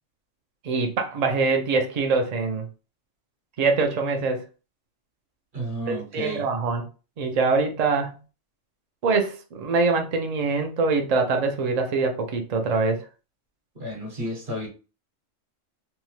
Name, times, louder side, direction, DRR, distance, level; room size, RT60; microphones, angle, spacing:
voice 1, 0.6-2.7 3.6-4.4 5.9-6.9 7.2-8.2 9.0-13.0, right 4 dB, 75° right, 0.3 m, -24 dB
voice 2, 5.5-6.5 13.7-14.7, equal, 45° right, 1.0 m, -32 dB
2.7 x 2.1 x 3.0 m
omnidirectional pair, 1.3 m